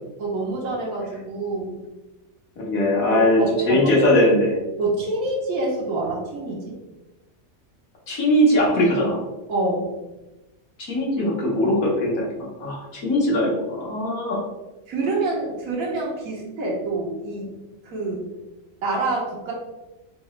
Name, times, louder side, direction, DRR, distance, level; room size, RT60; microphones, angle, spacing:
voice 1, 0.2-1.8 3.1-3.9 4.8-6.7 9.5-9.9 14.9-17.5 17.8-18.3 18.8-19.5, right 2 dB, 90° right, -4 dB, 1.4 m, -26 dB
voice 2, 2.6-4.6 8.1-9.2 10.9-12.2 12.6-14.4, left 1 dB, 75° left, -4 dB, 1.7 m, -20 dB
4.3 x 2.8 x 3.1 m, 1.0 s
omnidirectional pair, 1.5 m